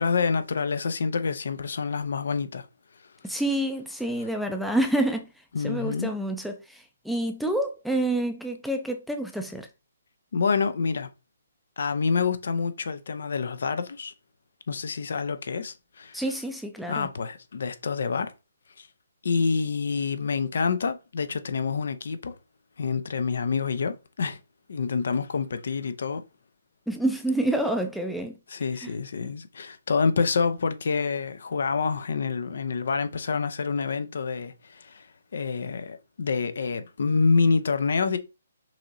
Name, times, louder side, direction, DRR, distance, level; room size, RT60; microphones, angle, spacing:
voice 1, 0.0-2.7 5.5-6.1 10.3-11.1 11.8-14.1 14.7-16.2 16.9-18.3 18.8-18.9 19.2-22.3 22.8-24.4 24.7-26.2 28.5-35.1 35.3-38.2, left 5 dB, 70° left, 0.6 m, -27 dB
voice 2, 3.2-5.3 5.6-6.5 7.1-9.7 16.1-17.1 26.9-28.3 28.8-28.9, right 1 dB, ahead, 0.4 m, -27 dB
5.8 x 2.7 x 2.9 m
hypercardioid pair, 155°, 0 cm